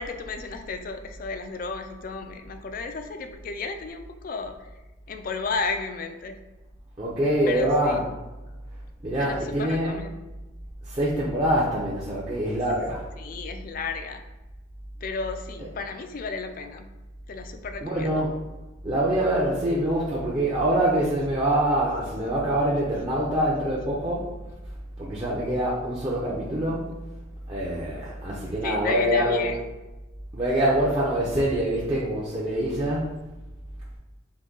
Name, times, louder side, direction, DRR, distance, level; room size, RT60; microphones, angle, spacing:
voice 1, 0.0-4.6 5.1-6.4 7.4-8.0 9.2-10.1 13.2-14.2 15.0-16.9 17.3-18.2 28.6-29.6, left 4 dB, 40° left, 7 dB, 0.3 m, -33 dB
voice 2, 7.0-8.0 9.0-10.0 10.8-13.1 17.8-18.4 18.8-24.3 25.0-27.0 27.5-29.5 30.3-33.1, right 1 dB, 25° right, -7 dB, 0.5 m, -25 dB
3.9 x 2.7 x 3.7 m, 1.1 s
head